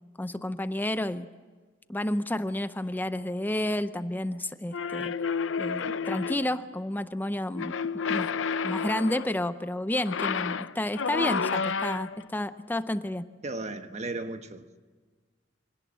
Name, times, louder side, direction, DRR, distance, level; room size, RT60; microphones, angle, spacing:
voice 1, 0.2-1.3 1.9-5.1 5.6-7.7 8.1-8.3 8.6-13.3, left 1 dB, 10° left, 0.6 m, -30 dB
sound 1, 4.7-6.6 7.5-9.3 10.0-12.2, left 5 dB, 75° left, 0.6 m, -30 dB
voice 2, 13.4-14.8, right 2 dB, 35° right, 1.2 m, -35 dB
25.0 x 18.0 x 7.5 m
head